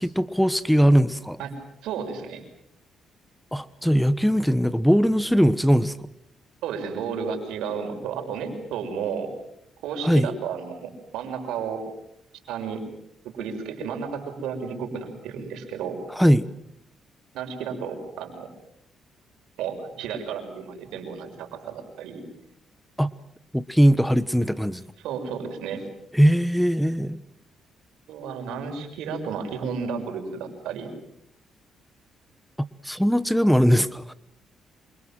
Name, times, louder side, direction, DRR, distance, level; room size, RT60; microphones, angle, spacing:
voice 1, 0.0-1.4 3.5-5.9 10.0-10.3 16.2-16.5 23.0-23.1 23.5-24.8 26.1-27.2 32.8-34.1, equal, ahead, 16 dB, 1.1 m, -20 dB
voice 2, 1.8-2.4 6.6-9.3 9.8-11.8 12.5-12.8 13.2-16.0 17.3-18.5 19.6-22.2 25.0-25.8 28.1-30.9, right 6 dB, 90° right, 6 dB, 6.1 m, -32 dB
27.5 x 26.0 x 7.6 m, 0.76 s
cardioid pair, 90°, 0 cm